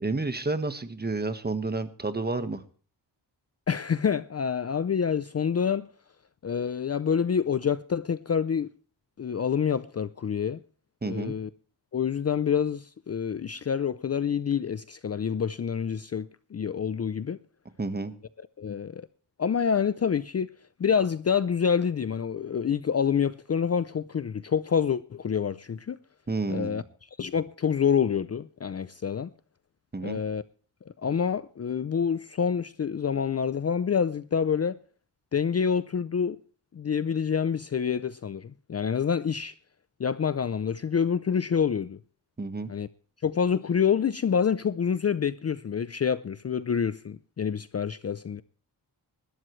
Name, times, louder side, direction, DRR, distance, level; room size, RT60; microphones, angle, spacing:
voice 1, 0.0-2.6 11.0-11.3 17.8-18.1 26.3-26.8 29.9-30.2 42.4-42.7, right 3 dB, 20° right, 1.4 m, -30 dB
voice 2, 3.7-5.9 6.4-8.7 9.2-10.6 11.0-11.5 11.9-17.4 18.6-19.1 19.4-20.5 20.8-26.0 26.5-26.8 27.2-29.3 30.0-30.4 31.0-34.8 35.3-36.4 36.7-39.5 40.0-42.0 42.7-42.9 43.2-48.4, left 7 dB, 35° left, 0.5 m, -27 dB
20.5 x 12.0 x 3.2 m
wide cardioid pair, 115°, 43 cm